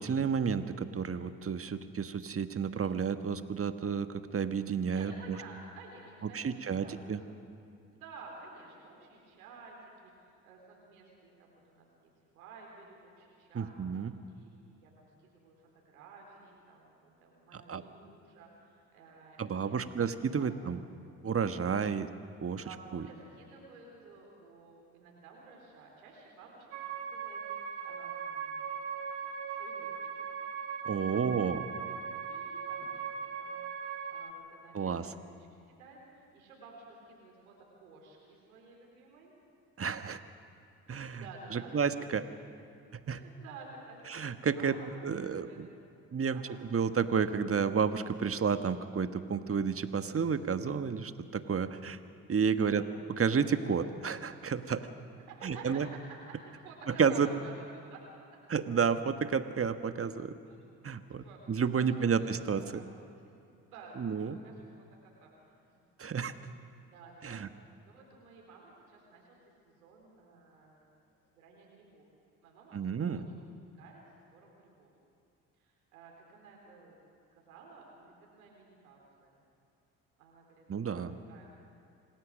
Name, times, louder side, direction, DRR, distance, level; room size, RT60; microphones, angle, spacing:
voice 1, 0.0-4.1 4.3-5.4 6.3-7.2 13.5-14.1 17.7-17.8 19.4-20.8 21.2-22.1 22.4-22.6 22.9-23.0 30.8-31.6 34.7-35.1 39.8-40.2 40.9-41.2 41.5-42.2 43.1-43.2 44.1-44.7 45.0-45.7 46.1-46.4 46.7-52.0 52.3-52.8 53.2-54.8 55.4-55.9 56.9-57.3 58.5-60.3 60.8-62.6 64.0-64.4 66.0-66.3 67.2-67.5 72.7-73.3 80.7-81.1, right 6 dB, 35° right, 10 dB, 1.4 m, -31 dB
voice 2, 4.9-7.2 7.9-13.8 14.3-20.1 20.4-20.5 22.6-26.7 27.0-28.7 29.5-29.9 30.2-30.3 31.1-31.2 31.8-31.9 32.3-32.9 33.2-35.3 35.7-39.3 41.1-41.9 43.1-45.6 46.3-46.6 52.6-52.9 55.2-56.0 56.3-58.0 60.5-60.6 61.1-62.9 63.6-64.1 64.4-64.7 65.0-65.8 66.9-67.4 67.8-69.4 69.6-70.9 71.3-72.1 72.4-73.2 73.8-74.0 74.3-74.9 75.6-77.0 77.3-79.4 80.2-81.0 81.3-81.8, right 4 dB, 85° right, -1 dB, 4.0 m, -53 dB
sound 1, 26.7-34.3, right 6 dB, 70° right, 1.6 m, -39 dB
27.0 x 19.0 x 6.5 m, 2.5 s
hypercardioid pair, 50°, 41 cm